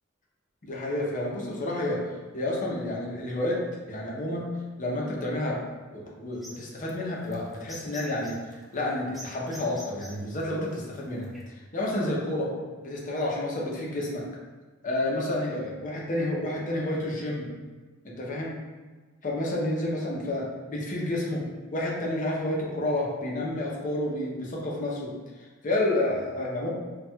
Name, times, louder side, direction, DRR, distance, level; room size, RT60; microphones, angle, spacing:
voice 1, 0.6-2.0 2.3-4.5 4.8-5.6 5.9-8.3 8.7-12.5 12.8-14.2 14.8-17.5 18.0-18.6 19.2-21.4 21.7-25.1 25.6-26.7, left 1 dB, 40° left, -3 dB, 0.6 m, -30 dB
sound 1, 6.3-11.4, equal, ahead, 0.4 m, -47 dB
4.3 x 2.3 x 2.3 m, 1.3 s
head